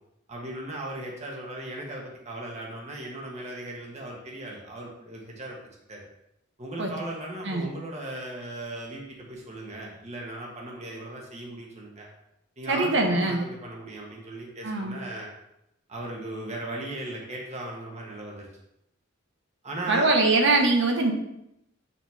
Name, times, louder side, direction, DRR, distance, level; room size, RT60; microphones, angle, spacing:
voice 1, 0.3-5.6 5.9-6.0 6.6-12.1 12.6-15.3 15.9-18.5 19.6-20.1, right 1 dB, 35° right, -2 dB, 1.5 m, -37 dB
voice 2, 12.7-13.4 14.6-15.0 19.9-21.1, right 2 dB, 65° right, 2 dB, 1.3 m, -22 dB
7.8 x 5.7 x 3.5 m, 0.82 s
head